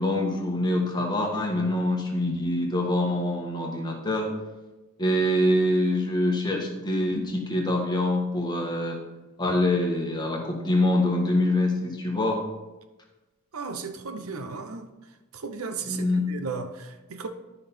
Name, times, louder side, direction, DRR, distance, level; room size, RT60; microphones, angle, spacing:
voice 1, 0.0-4.3 5.0-9.0 9.4-12.4 15.9-16.2, left 1 dB, 20° left, 1.5 m, -25 dB
voice 2, 13.5-14.9 15.3-17.3, right 4 dB, 70° right, 0.8 m, -35 dB
12.0 x 5.6 x 4.3 m
head